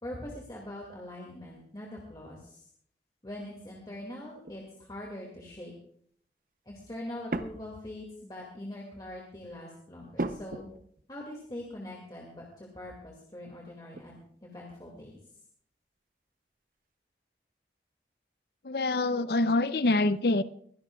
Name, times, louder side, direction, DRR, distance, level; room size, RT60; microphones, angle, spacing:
voice 1, 0.0-2.6 3.2-5.7 6.7-10.7 11.1-15.2, left 1 dB, 25° left, -2 dB, 2.2 m, -43 dB
sound 1, 4.4-4.7 7.3-8.0 8.5-8.8 10.1-11.1 11.5-11.6 13.9-14.3 14.5-15.2, right 2 dB, 50° right, 0.7 m, -38 dB
voice 2, 18.6-20.4, left 2 dB, 65° left, 14 dB, 0.6 m, -25 dB
22.0 x 17.0 x 2.4 m, 0.64 s
head